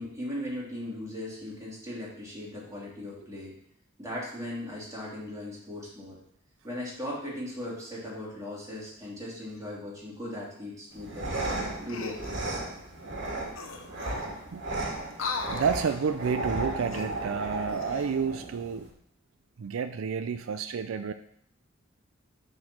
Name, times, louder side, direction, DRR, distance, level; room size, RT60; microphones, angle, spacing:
voice 1, 0.0-3.5 4.0-6.2 6.6-12.4 13.8-13.9, left 1 dB, 15° right, -6 dB, 3.1 m, -38 dB
sound 1, 10.9-18.9, right 2 dB, 60° right, 2.3 m, -35 dB
sound 2, 11.9-12.4 13.3-13.4 13.5-14.4 15.1-16.1 16.8-18.2 18.7-18.9, left 4 dB, 80° left, 0.9 m, -38 dB
voice 2, 15.0-18.9 19.6-21.1, right 6 dB, 80° right, 10 dB, 0.4 m, -30 dB
7.4 x 4.5 x 6.1 m, 0.70 s
head